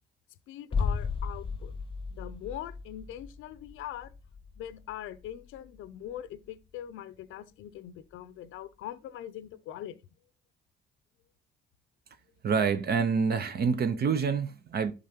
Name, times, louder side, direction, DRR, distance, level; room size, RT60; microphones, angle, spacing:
voice 1, 0.5-1.8 2.1-4.1 4.6-10.0, left 11 dB, 85° left, 0.5 m, -42 dB
sound 1, 0.7-6.4 6.7-6.8, left 5 dB, 25° left, 0.4 m, -36 dB
voice 2, 12.4-14.9, right 6 dB, 55° right, 0.7 m, -27 dB
11.0 x 4.0 x 2.8 m
cardioid pair, 90°, 20 cm